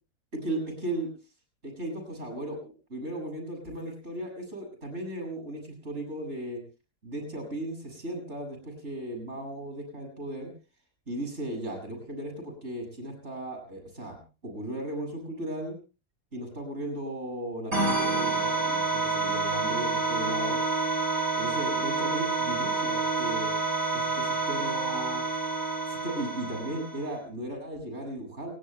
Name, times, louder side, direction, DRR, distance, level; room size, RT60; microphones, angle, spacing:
voice 1, 0.3-1.1 1.6-6.6 7.0-10.5 11.1-15.7 16.3-20.6 21.4-23.5 23.9-25.2 25.9-28.5, right 1 dB, 45° right, 3 dB, 8.1 m, -36 dB
sound 1, 17.7-27.2, right 3 dB, 60° right, 5.8 m, -28 dB
29.5 x 19.0 x 2.3 m, 0.35 s
omnidirectional pair, 1.7 m